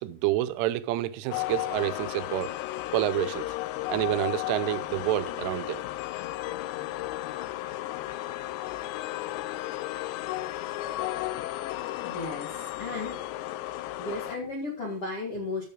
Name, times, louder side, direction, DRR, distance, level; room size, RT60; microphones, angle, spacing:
voice 1, 0.0-2.5 2.9-3.5 3.9-5.8, right 14 dB, 85° right, 3.2 m, -28 dB
sound 1, 1.3-14.4, left 16 dB, 85° left, 2.6 m, -34 dB
voice 2, 12.0-13.2 13.8-15.6, left 2 dB, 55° left, 1.5 m, -35 dB
14.5 x 6.4 x 3.8 m
omnidirectional pair, 5.6 m